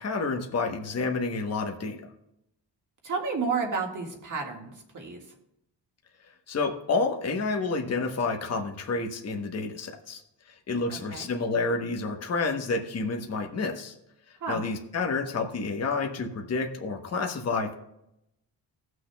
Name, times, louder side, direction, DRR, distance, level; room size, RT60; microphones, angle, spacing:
voice 1, 0.0-2.0 6.5-10.2 10.7-13.9 14.5-17.7, left 3 dB, 35° left, 3 dB, 1.0 m, -29 dB
voice 2, 3.0-5.3 10.9-11.3 14.4-14.6, right 5 dB, 40° right, 0 dB, 1.8 m, -31 dB
19.0 x 6.3 x 2.3 m, 0.81 s
wide cardioid pair, 130°, 45 cm